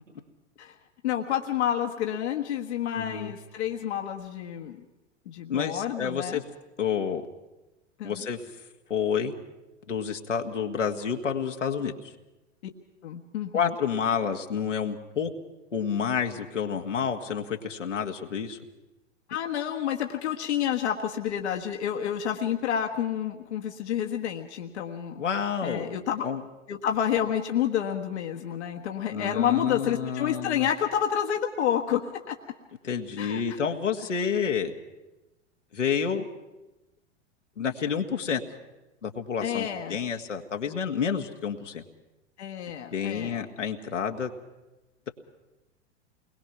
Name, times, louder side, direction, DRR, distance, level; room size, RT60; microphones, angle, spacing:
voice 1, 1.0-4.8 5.2-6.4 8.0-8.2 13.0-13.7 19.3-25.2 25.6-26.3 26.7-32.0 32.3-32.4 33.2-33.6 39.4-40.0 42.4-43.4, left 9 dB, 65° left, 3 dB, 1.6 m, -29 dB
voice 2, 2.9-3.3 5.5-6.4 6.8-7.2 8.0-8.4 8.9-9.3 9.9-12.1 13.5-15.3 15.7-18.6 25.2-25.9 26.2-26.4 29.1-30.7 32.8-34.7 35.7-36.3 37.6-38.4 39.0-41.8 42.9-44.3, left 7 dB, 80° left, 3 dB, 1.9 m, -29 dB
29.5 x 21.0 x 6.0 m, 1.0 s
figure-of-eight pair, 90°, 37 cm